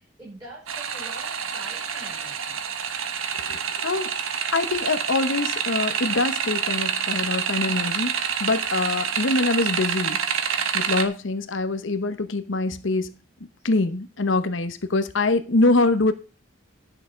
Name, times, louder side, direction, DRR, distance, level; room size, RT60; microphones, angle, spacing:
voice 1, 0.0-2.6, right 2 dB, 20° right, 6.4 m, -44 dB
sound 1, 0.7-11.1, right 7 dB, 90° right, 1.3 m, -27 dB
voice 2, 3.5-4.1 4.5-10.2 10.7-13.1 13.6-16.1, left 2 dB, 70° left, 0.9 m, -24 dB
11.0 x 6.8 x 5.1 m
head